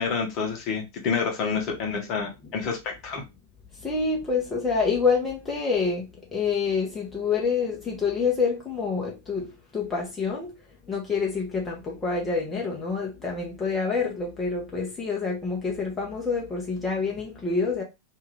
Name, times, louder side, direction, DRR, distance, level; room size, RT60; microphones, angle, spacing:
voice 1, 0.0-3.2, left 5 dB, 40° left, 0.9 m, -28 dB
voice 2, 3.8-10.6 10.9-17.8, left 5 dB, 15° left, 0.7 m, -27 dB
2.7 x 2.4 x 3.1 m
figure-of-eight pair, 90°, 0 cm